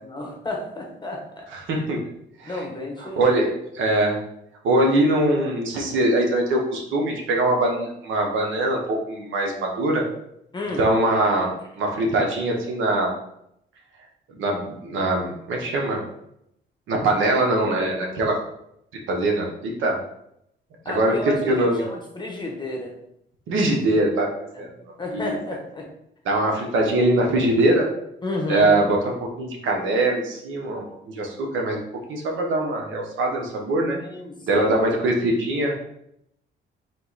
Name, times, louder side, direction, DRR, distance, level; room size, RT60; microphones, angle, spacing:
voice 1, 0.0-1.4 2.4-3.4 10.5-10.9 20.8-22.9 24.5-24.6 25.0-25.9 28.2-28.8 34.0-34.7, left 2 dB, 20° left, 1 dB, 1.1 m, -31 dB
voice 2, 1.5-2.0 2.4-2.6 3.0-4.2 4.6-10.0 10.7-13.1 14.4-16.0 16.9-18.3 19.1-20.0 20.9-21.8 23.5-24.7 25.1-25.3 26.2-27.9 28.5-31.8 32.1-34.0 34.5-35.7, right 1 dB, 80° right, 1 dB, 1.0 m, -22 dB
3.8 x 2.9 x 4.0 m, 0.75 s
cardioid pair, 90°, 20 cm